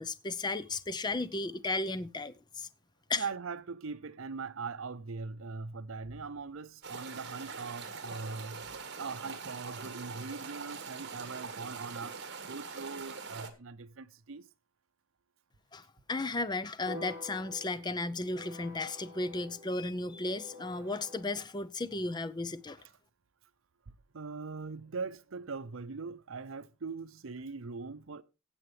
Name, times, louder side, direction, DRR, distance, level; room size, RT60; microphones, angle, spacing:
voice 1, 0.0-2.7 3.1-3.2 15.7-22.8, left 2 dB, 20° left, 0.5 m, -35 dB
voice 2, 3.2-8.7 9.0-12.2 12.5-14.4 24.1-28.2, right 4 dB, 70° right, 0.7 m, -41 dB
sound 1, 6.8-13.5, right 5 dB, 55° right, 1.5 m, -43 dB
sound 2, 16.8-21.2, left 2 dB, 15° right, 3.0 m, -48 dB
16.0 x 7.9 x 3.3 m
head